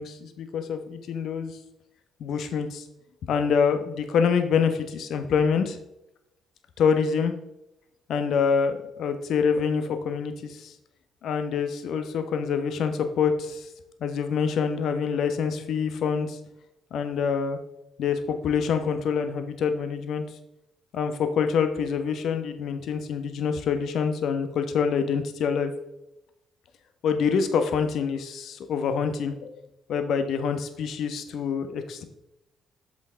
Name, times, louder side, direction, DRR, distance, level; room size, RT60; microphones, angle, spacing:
voice 1, 0.0-1.6 2.2-2.9 3.3-5.8 6.8-7.3 8.1-10.7 11.2-13.7 14.0-16.4 16.9-17.6 18.0-20.2 20.9-25.7 27.0-29.5 29.9-32.0, left 6 dB, 60° left, 8 dB, 1.0 m, -26 dB
7.7 x 7.6 x 3.7 m, 0.88 s
figure-of-eight pair, 45°, 0 cm